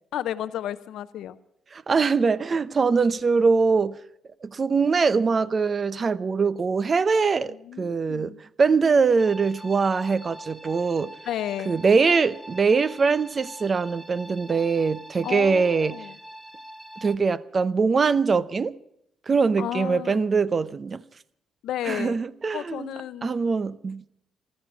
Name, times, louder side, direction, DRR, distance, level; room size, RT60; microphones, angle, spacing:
voice 1, 0.1-1.4 7.5-8.4 11.3-11.7 15.2-16.2 19.6-20.3 21.6-22.2 22.5-23.3, left 11 dB, 80° left, 0.6 m, -32 dB
voice 2, 1.7-4.0 4.4-8.3 8.6-11.1 11.7-15.9 17.0-18.7 19.3-21.0 21.9-22.9 23.2-24.1, right 5 dB, 40° right, 0.7 m, -22 dB
sound 1, 9.2-17.2, equal, 10° right, 1.4 m, -44 dB
15.0 x 13.0 x 6.1 m
cardioid pair, 90°, 0 cm